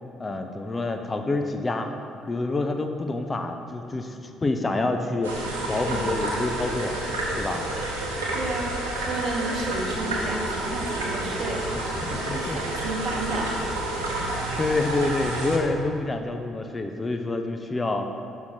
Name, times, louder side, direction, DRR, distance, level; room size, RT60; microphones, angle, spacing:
voice 1, 0.2-1.9 2.3-5.3 5.7-7.0 7.4-7.6 12.0-12.6 14.2-18.1, left 2 dB, 25° left, 5 dB, 0.5 m, -27 dB
sound 1, 5.2-15.6, right 1 dB, 85° right, 0.8 m, -29 dB
voice 2, 8.3-11.8 12.1-13.7, right 2 dB, 55° right, 1 dB, 0.9 m, -32 dB
5.9 x 3.8 x 5.6 m, 2.6 s
hypercardioid pair, 50°, 0 cm